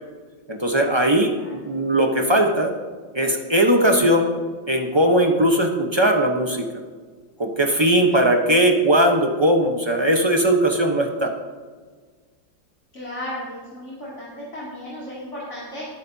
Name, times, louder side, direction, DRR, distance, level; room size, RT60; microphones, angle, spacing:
voice 1, 0.5-2.7 3.1-4.3 4.7-6.6 7.4-11.3, right 1 dB, 25° right, 2 dB, 0.5 m, -19 dB
voice 2, 7.7-8.2 12.9-15.9, left 1 dB, 35° left, -7 dB, 2.9 m, -35 dB
19.5 x 10.5 x 2.8 m, 1.5 s
omnidirectional pair, 2.1 m